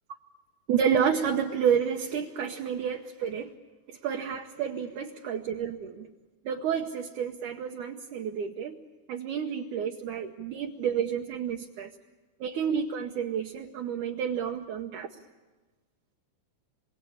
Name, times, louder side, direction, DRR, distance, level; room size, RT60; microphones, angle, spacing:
voice 1, 0.7-3.5 3.9-6.1 6.5-8.8 9.1-11.9 12.4-15.1, right 7 dB, 70° right, 3 dB, 2.0 m, -30 dB
27.0 x 23.0 x 8.7 m, 1.2 s
omnidirectional pair, 4.4 m